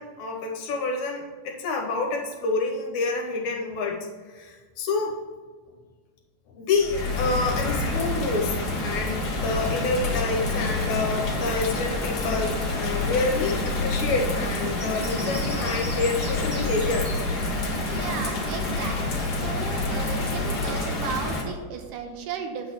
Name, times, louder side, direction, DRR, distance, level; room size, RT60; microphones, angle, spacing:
voice 1, 0.0-5.2 6.5-8.5 8.8-17.1, left 3 dB, 70° left, 1 dB, 2.0 m, -28 dB
Bird vocalization bird call bird song / Rain, 6.8-21.4, left 2 dB, 50° left, 1.2 m, -27 dB
Bird vocalization bird call bird song, 10.8-17.1, equal, 20° right, 1.8 m, -40 dB
voice 2, 17.9-22.7, right 6 dB, 80° right, 5 dB, 2.4 m, -35 dB
8.4 x 3.9 x 7.0 m, 1.5 s
omnidirectional pair, 3.7 m